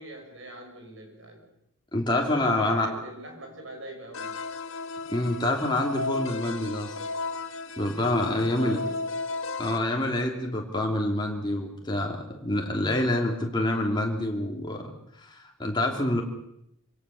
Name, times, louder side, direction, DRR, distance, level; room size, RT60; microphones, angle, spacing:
voice 1, 0.0-1.4 2.1-4.4 8.0-9.0, right 1 dB, 65° right, 3 dB, 6.2 m, -41 dB
voice 2, 1.9-2.9 5.1-7.0 7.8-8.8 9.6-14.9 15.2-16.2, left 1 dB, 20° left, 0 dB, 3.0 m, -27 dB
sound 1, 4.1-9.8, left 3 dB, 70° left, 1.6 m, -34 dB
25.0 x 17.0 x 7.1 m, 0.78 s
head